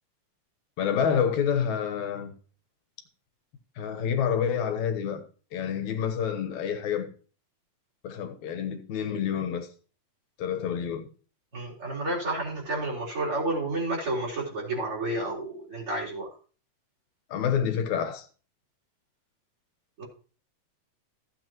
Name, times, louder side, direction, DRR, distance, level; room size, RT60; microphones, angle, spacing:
voice 1, 0.8-2.3 3.8-5.2 5.5-7.1 8.0-9.7 10.4-11.0 17.3-18.3, left 8 dB, 75° left, 2.6 m, -28 dB
voice 2, 11.5-16.3 20.0-20.1, right 2 dB, 45° right, 4.5 m, -30 dB
15.0 x 8.5 x 3.0 m
omnidirectional pair, 3.3 m